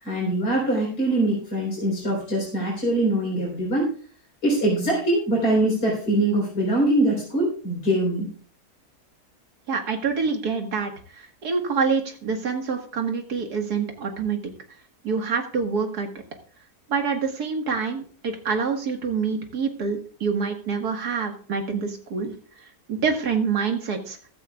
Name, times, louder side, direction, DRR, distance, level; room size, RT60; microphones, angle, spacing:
voice 1, 0.0-3.9 4.4-8.3, right 1 dB, 80° left, -3 dB, 4.6 m, -23 dB
voice 2, 9.7-10.9 11.4-14.4 15.0-16.1 16.9-22.3 22.9-24.2, right 5 dB, 85° right, 4 dB, 2.2 m, -26 dB
15.0 x 13.0 x 2.4 m, 0.42 s
omnidirectional pair, 1.6 m